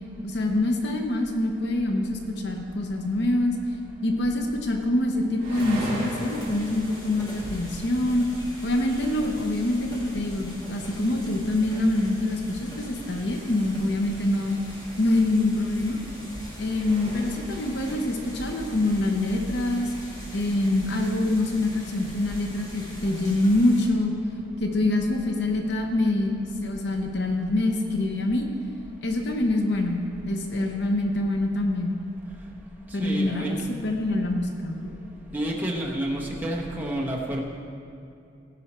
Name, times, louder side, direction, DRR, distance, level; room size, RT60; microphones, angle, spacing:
voice 1, 0.2-3.6 4.0-8.3 8.6-14.6 15.0-16.0 16.6-19.9 20.3-24.1 24.6-28.5 29.0-32.0 32.9-34.9, left 1 dB, 60° left, 3 dB, 0.8 m, -25 dB
sound 1, 4.9-18.7, right 1 dB, 25° right, 2.8 m, -43 dB
sound 2, 5.5-23.9, equal, 20° left, 1.8 m, -41 dB
voice 2, 32.9-33.5 35.3-37.4, right 1 dB, 10° right, -3 dB, 1.0 m, -29 dB
16.0 x 5.6 x 4.4 m, 2.6 s
head